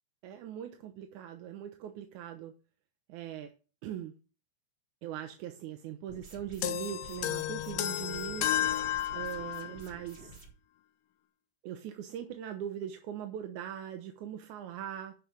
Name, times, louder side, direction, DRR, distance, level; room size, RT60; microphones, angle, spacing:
voice 1, 0.2-2.5 3.1-3.5 3.8-4.1 5.0-8.5 9.1-10.4 11.6-15.2, right 10 dB, 75° right, 6 dB, 2.1 m, -41 dB
sound 1, 6.1-10.5, right 3 dB, 20° right, 3.5 m, -51 dB
sound 2, 6.6-9.8, left 12 dB, 80° left, 2.4 m, -32 dB
8.5 x 5.9 x 7.8 m, 0.34 s
omnidirectional pair, 3.8 m